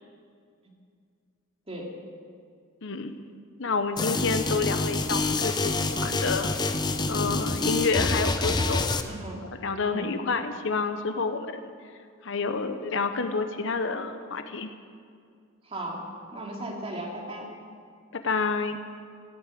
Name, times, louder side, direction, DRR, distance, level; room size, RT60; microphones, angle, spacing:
voice 1, 2.8-3.1 3.6-6.5 7.1-8.9 9.6-11.6 12.2-14.7 18.1-18.8, left 4 dB, 60° left, 8 dB, 0.9 m, -29 dB
sound 1, 4.0-9.0, left 3 dB, 20° left, 0.6 m, -27 dB
voice 2, 9.0-9.4 9.8-10.1 15.6-17.5, right 1 dB, 30° right, -1 dB, 2.5 m, -36 dB
16.5 x 8.3 x 8.4 m, 2.2 s
head